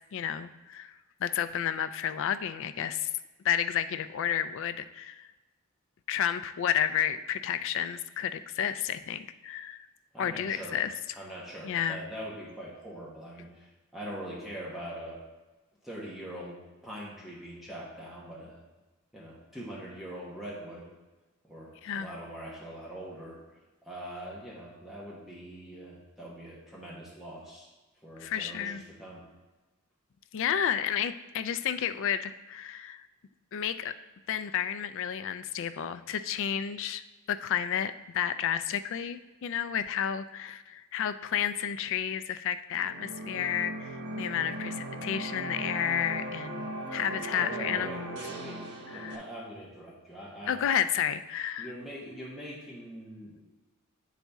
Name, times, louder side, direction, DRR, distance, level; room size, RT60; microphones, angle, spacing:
voice 1, 0.1-0.9 1.2-3.1 3.4-5.3 6.1-9.9 10.2-10.9 11.6-12.0 21.8-22.1 28.2-28.8 30.3-33.1 33.5-34.0 34.3-48.2 48.9-49.2 50.5-51.7, left 9 dB, 60° left, 12 dB, 0.3 m, -31 dB
voice 2, 10.1-10.8 11.1-15.2 15.8-18.6 19.1-20.9 21.4-23.4 23.8-27.7 28.0-29.2 47.3-50.6 51.6-53.5, right 1 dB, ahead, -6 dB, 1.2 m, -43 dB
sound 1, 42.7-49.2, right 2 dB, 90° right, 1.0 m, -38 dB
9.3 x 4.1 x 3.5 m, 1.2 s
head